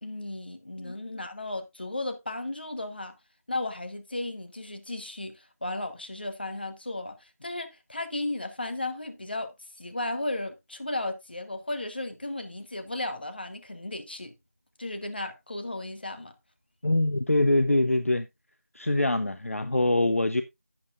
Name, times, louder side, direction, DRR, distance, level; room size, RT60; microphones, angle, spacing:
voice 1, 0.0-3.1 3.5-14.3 14.8-16.3, left 2 dB, 35° left, 1.2 m, -35 dB
voice 2, 16.8-18.3 18.7-20.4, left 2 dB, 55° left, 0.7 m, -24 dB
11.0 x 8.5 x 2.5 m
figure-of-eight pair, 170°, 9 cm